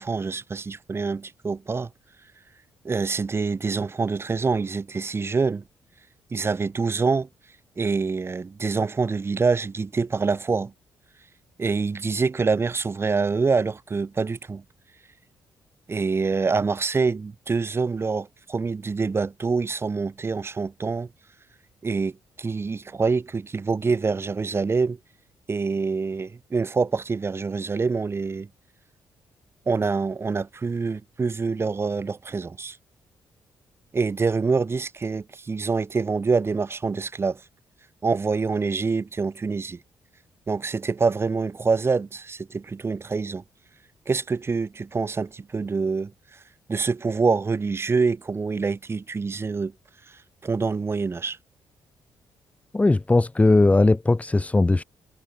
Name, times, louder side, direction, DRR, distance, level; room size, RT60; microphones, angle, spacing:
voice 1, 0.0-1.9 2.8-5.6 6.3-7.3 7.8-10.7 11.6-14.6 15.9-21.1 21.8-25.0 25.5-28.5 29.7-32.8 33.9-37.4 38.0-39.8 40.5-43.4 44.1-46.4 46.7-49.7 50.4-51.4, right 4 dB, 35° right, 7.7 m, -26 dB
voice 2, 52.7-54.8, left 2 dB, 20° left, 3.4 m, -18 dB
cardioid pair, 95°, 8 cm